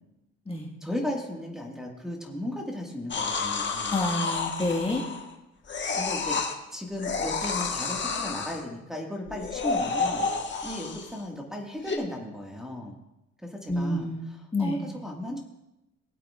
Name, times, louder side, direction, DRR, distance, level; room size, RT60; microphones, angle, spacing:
voice 1, 0.8-4.0 6.0-12.9 13.4-15.4, left 1 dB, ahead, -2 dB, 1.9 m, -36 dB
sound 1, 3.1-5.3 5.7-6.5 7.0-8.6 9.3-11.2 11.8-12.0, left 4 dB, 40° left, 1.5 m, -30 dB
voice 2, 3.9-5.0 13.7-14.2 14.5-14.8, left 2 dB, 20° left, -1 dB, 1.8 m, -28 dB
19.0 x 8.4 x 2.5 m, 0.93 s
cardioid pair, 90°, 30 cm